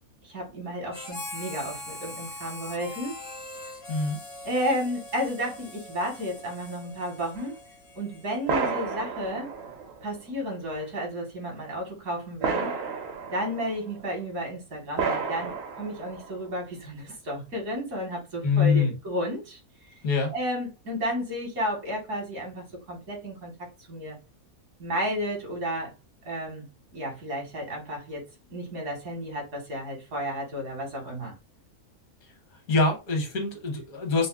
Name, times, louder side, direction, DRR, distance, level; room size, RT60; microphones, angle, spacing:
voice 1, 0.2-3.2 4.4-7.6 8.0-9.5 10.0-12.7 13.3-20.0 20.3-24.2 24.8-25.9 26.3-28.2 28.5-31.3, equal, 75° right, 1.9 m, -32 dB
Harmonica, 0.9-8.6, left 1 dB, 30° left, 0.5 m, -42 dB
voice 2, 3.9-4.2 18.4-18.9 20.0-20.3 32.7-34.3, left 4 dB, 75° left, 1.5 m, -24 dB
sound 1, 7.4-7.5 8.5-10.3 10.8-10.9 12.4-14.0 15.0-16.5, right 5 dB, 55° right, 0.8 m, -31 dB
5.2 x 2.0 x 2.3 m
omnidirectional pair, 1.6 m